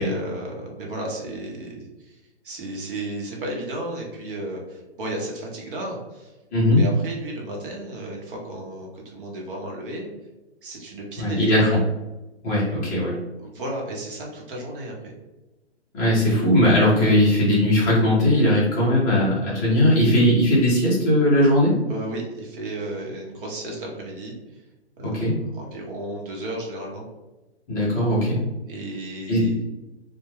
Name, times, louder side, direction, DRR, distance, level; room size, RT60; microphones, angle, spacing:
voice 1, 0.0-6.3 6.7-10.1 10.6-11.5 13.4-15.1 21.9-24.6 25.0-25.1 25.5-27.1 28.7-29.6, right 1 dB, 50° right, -1 dB, 0.8 m, -33 dB
voice 2, 6.5-6.8 11.2-11.8 12.4-13.2 15.9-21.7 25.0-25.4 27.7-28.4 29.3-29.4, left 1 dB, 15° left, -7 dB, 0.5 m, -19 dB
2.2 x 2.1 x 3.1 m, 1.1 s
hypercardioid pair, 145°, 34 cm